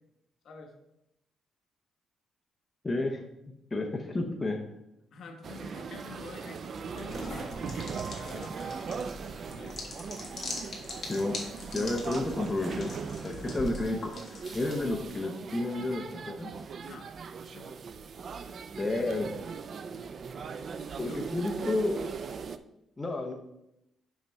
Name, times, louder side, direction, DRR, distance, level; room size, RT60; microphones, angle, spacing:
voice 1, 2.8-3.2 3.7-4.6 11.1-11.4 11.7-12.9 13.2-14.1 14.5-16.5 18.8-19.3 21.0-22.0 23.0-23.3, left 2 dB, 15° left, 1 dB, 0.7 m, -31 dB
voice 2, 5.1-7.3 7.6-9.0 9.5-9.8 16.8-17.1 17.5-17.8 21.0-21.2, left 3 dB, 60° left, 3 dB, 1.2 m, -47 dB
sound 1, 5.4-22.6, right 5 dB, 45° right, 0.4 m, -39 dB
sound 2, 7.0-15.1, left 2 dB, 30° left, 1.6 m, -42 dB
5.8 x 5.3 x 4.5 m, 0.84 s
cardioid pair, 135°, 0 cm